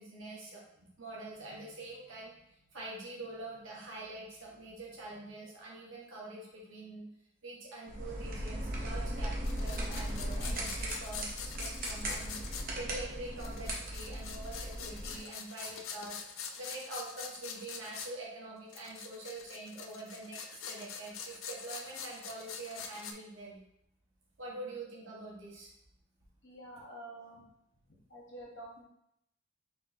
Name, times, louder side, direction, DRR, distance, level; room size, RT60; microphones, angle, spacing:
voice 1, 0.0-2.4 2.7-7.1 7.4-16.2 16.6-23.6 24.4-25.7, right 2 dB, 70° right, -5 dB, 1.3 m, -45 dB
sound 1, 7.9-15.2, right 1 dB, 40° right, 0.8 m, -37 dB
sound 2, 9.4-12.7 13.4-18.1 18.7-23.1, left 6 dB, 75° left, 0.5 m, -44 dB
voice 2, 26.4-27.4 28.1-28.8, right 1 dB, 55° left, -4 dB, 1.2 m, -48 dB
4.0 x 3.0 x 4.1 m, 0.78 s
head